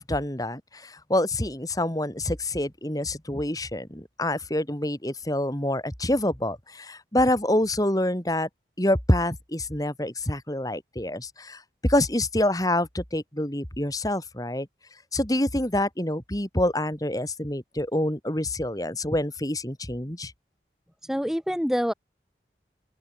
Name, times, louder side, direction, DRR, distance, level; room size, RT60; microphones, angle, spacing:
voice 1, 0.0-8.5 8.8-14.7 15.1-20.3, left 1 dB, 20° left, 2.9 m, -26 dB
voice 2, 21.0-21.9, equal, ahead, 1.4 m, -26 dB
open air
head